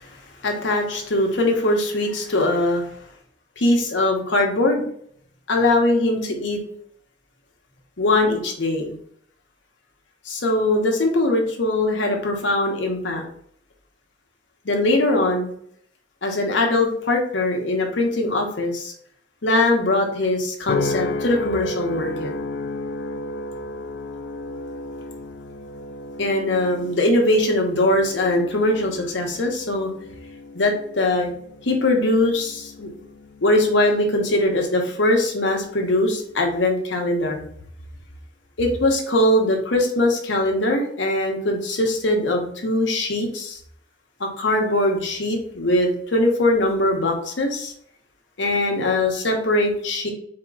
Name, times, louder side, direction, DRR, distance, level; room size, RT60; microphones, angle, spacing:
voice 1, 0.4-2.8 3.6-4.8 5.5-6.6 8.0-9.0 10.3-13.2 14.6-15.5 16.2-18.9 19.4-22.3 26.2-29.9 30.5-31.3 31.6-32.9 33.4-37.4 38.6-43.6 44.2-47.7 48.4-50.1, left 1 dB, 80° left, 2 dB, 1.0 m, -21 dB
sound 1, 20.7-35.2 35.7-36.1, left 2 dB, 65° left, 0.3 m, -33 dB
4.2 x 2.9 x 3.6 m, 0.65 s
head